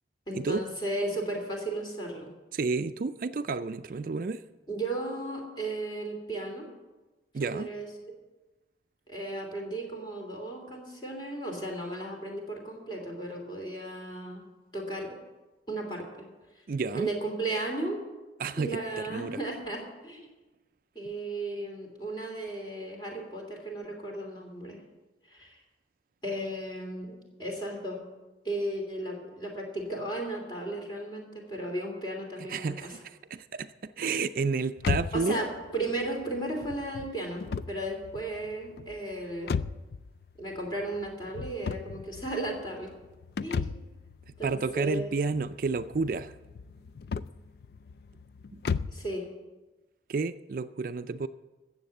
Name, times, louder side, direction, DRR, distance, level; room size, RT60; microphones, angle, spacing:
voice 1, 0.3-2.3 4.7-6.7 7.5-7.9 9.1-14.4 14.7-15.2 15.7-16.3 16.9-18.0 18.6-20.3 20.9-24.8 25.3-25.6 26.2-28.0 28.4-32.9 35.1-35.5 35.7-39.7 40.4-42.9 43.4-43.8 44.4-45.1 46.8-46.9 48.9-49.3, right 1 dB, 25° left, 1 dB, 2.9 m, -35 dB
voice 2, 2.5-4.4 7.3-7.7 16.7-17.1 18.4-19.4 32.5-33.7 34.0-35.4 44.3-46.3 48.5-48.6 50.1-51.3, right 4 dB, 50° right, 11 dB, 0.4 m, -31 dB
sound 1, 34.8-49.1, left 5 dB, 60° left, 0.3 m, -37 dB
13.5 x 7.9 x 7.7 m, 1.1 s
head